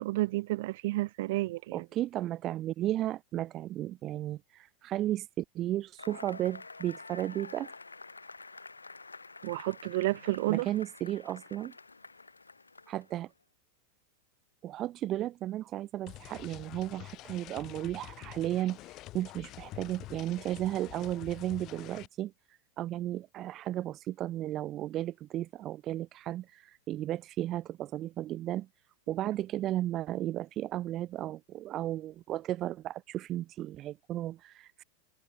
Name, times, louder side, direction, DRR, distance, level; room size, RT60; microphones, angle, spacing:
voice 1, 0.0-1.8 9.4-10.7, right 18 dB, 50° right, 1.1 m, -31 dB
voice 2, 1.7-7.7 10.5-11.7 12.9-13.3 14.6-18.8 19.1-22.3 22.8-28.7 29.1-34.8, right 13 dB, 35° right, 0.9 m, -34 dB
Cheering / Applause / Crowd, 6.0-13.2, left 3 dB, 80° left, 1.7 m, -48 dB
sound 1, 16.1-22.1, left 17 dB, 35° left, 4.6 m, -47 dB
figure-of-eight pair, 90°, 0 cm